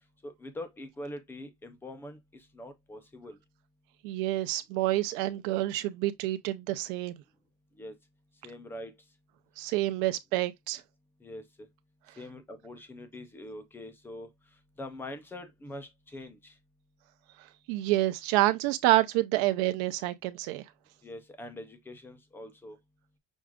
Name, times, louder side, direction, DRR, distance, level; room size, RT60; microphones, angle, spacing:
voice 1, 0.2-3.4 7.7-7.9 8.4-8.9 11.2-11.7 12.2-16.6 21.0-22.8, left 1 dB, 5° left, 0.3 m, -44 dB
voice 2, 4.0-7.1 9.6-10.8 17.7-20.6, right 16 dB, 60° right, 0.6 m, -28 dB
6.3 x 2.4 x 3.5 m
cardioid pair, 175°, 46 cm